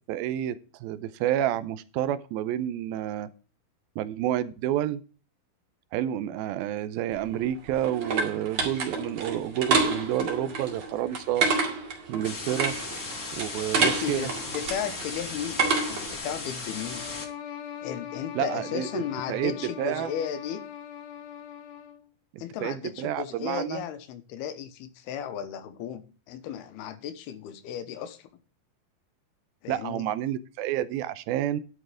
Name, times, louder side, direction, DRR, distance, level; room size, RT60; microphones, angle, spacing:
voice 1, 0.1-3.3 4.0-5.0 5.9-11.5 12.1-12.8 13.3-14.3 18.4-19.0 19.3-20.1 22.3-23.8 29.7-31.6, right 12 dB, 80° right, 2.4 m, -29 dB
sound 1, 7.2-16.2, right 4 dB, 45° right, 3.0 m, -29 dB
sound 2, 12.2-17.2, left 3 dB, 35° left, 1.6 m, -37 dB
voice 2, 13.7-17.0 17.8-20.6 22.4-28.3 29.6-30.1, left 9 dB, 90° left, 3.1 m, -35 dB
sound 3, 16.7-22.1, left 9 dB, 70° left, 2.7 m, -41 dB
11.5 x 6.5 x 5.0 m
omnidirectional pair, 4.4 m